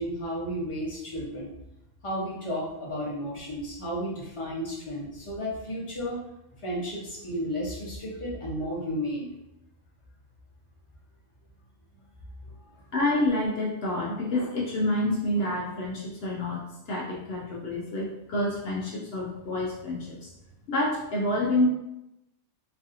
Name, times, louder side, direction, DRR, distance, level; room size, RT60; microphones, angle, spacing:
voice 1, 0.0-1.5 2.0-6.2 6.6-9.3 11.9-12.0 12.4-12.7, equal, 30° left, -5 dB, 0.7 m, -33 dB
voice 2, 12.9-20.3 20.7-21.7, left 1 dB, 65° left, -2 dB, 0.6 m, -28 dB
3.1 x 2.7 x 2.5 m, 0.88 s
omnidirectional pair, 1.5 m